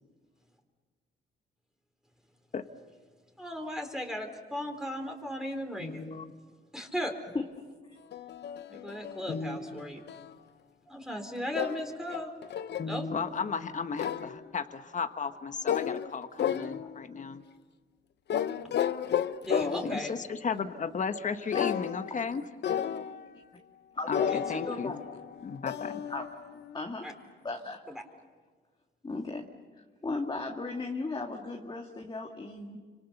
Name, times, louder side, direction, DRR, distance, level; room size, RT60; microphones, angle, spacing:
voice 1, 3.4-6.0 6.7-7.1 8.7-10.0 10.9-12.3 12.8-13.1 19.5-20.1 24.3-24.9 27.0-27.1, equal, 5° right, 3 dB, 3.9 m, -37 dB
voice 2, 5.8-6.3 9.3-9.8 12.8-17.4 18.7-18.8 19.8-22.4 24.1-24.2 24.5-25.0 25.4-26.0, left 5 dB, 40° left, 9 dB, 1.3 m, -35 dB
sound 1, 8.1-10.3 11.5-13.0 14.0-14.4 15.7-16.1 16.4-17.1 18.3-20.0 21.5-22.3 22.6-23.3 24.1-26.8, left 9 dB, 60° left, 0.9 m, -33 dB
voice 3, 19.5-19.8 21.5-21.7 23.9-25.0 26.1-26.3 26.7-27.1 27.4-27.8 29.0-29.4 30.0-32.8, left 3 dB, 25° left, 1 dB, 2.2 m, -35 dB
29.5 x 26.0 x 6.8 m, 1.5 s
cardioid pair, 90°, 20 cm